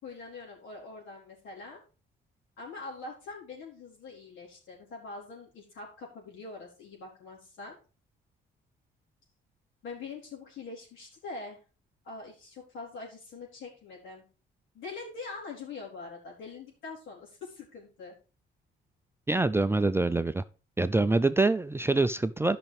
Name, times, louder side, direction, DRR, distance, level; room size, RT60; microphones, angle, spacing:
voice 1, 0.0-1.8 2.6-7.7 9.8-11.6 12.0-14.2 14.7-18.1, left 3 dB, 75° left, -3 dB, 4.1 m, -43 dB
voice 2, 19.3-20.4 20.8-22.6, right 2 dB, 10° right, 11 dB, 0.4 m, -25 dB
12.0 x 5.9 x 3.5 m, 0.34 s
cardioid pair, 90°, 20 cm